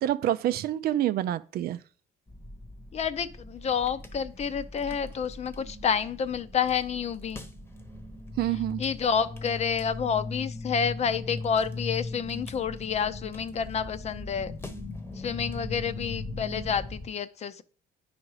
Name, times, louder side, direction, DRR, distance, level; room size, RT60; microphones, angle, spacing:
voice 1, 0.0-1.8 8.4-8.8, right 12 dB, 65° right, 0.5 m, -27 dB
sound 1, 2.3-17.1, left 2 dB, 10° left, 1.0 m, -39 dB
voice 2, 2.9-7.4 8.8-14.5 15.2-17.6, left 7 dB, 40° left, 0.6 m, -29 dB
9.6 x 5.0 x 4.8 m
cardioid pair, 110°, 17 cm